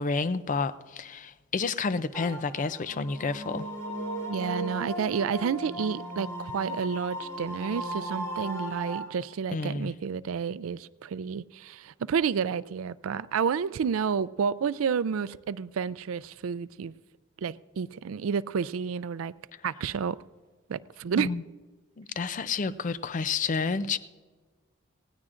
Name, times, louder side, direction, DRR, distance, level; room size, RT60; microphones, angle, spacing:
voice 1, 0.0-3.7 9.5-9.9 21.2-21.4 22.0-24.0, left 4 dB, 40° left, 0.4 m, -30 dB
sound 1, 2.1-9.0, right 1 dB, 15° left, 2.9 m, -36 dB
voice 2, 4.3-16.9 17.4-19.3 19.6-20.2 20.7-21.3, right 6 dB, 85° right, 0.4 m, -30 dB
19.5 x 17.0 x 2.5 m
head